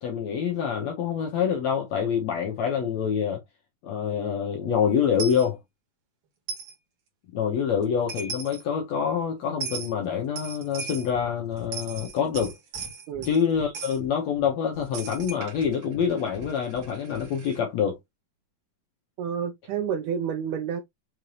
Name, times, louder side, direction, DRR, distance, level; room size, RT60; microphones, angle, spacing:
voice 1, 0.0-3.4 3.8-5.6 7.3-12.6 13.2-18.0, left 7 dB, 70° left, 1.7 m, -26 dB
Coin (dropping), 5.2-5.4 6.5-6.7 7.8-7.9 8.1-8.6 9.6-9.9 10.4-11.1 11.6-13.4 13.7-14.0 14.9-17.6, right 5 dB, 55° right, 1.8 m, -37 dB
Breathing, 11.1-11.3 11.5-11.7 11.9-12.1 12.3-13.7 14.0-14.9 15.2-16.1 16.3-17.3, left 5 dB, 40° left, 1.2 m, -45 dB
voice 2, 19.2-20.8, right 8 dB, 80° right, 1.9 m, -29 dB
5.8 x 2.6 x 3.1 m
omnidirectional pair, 4.1 m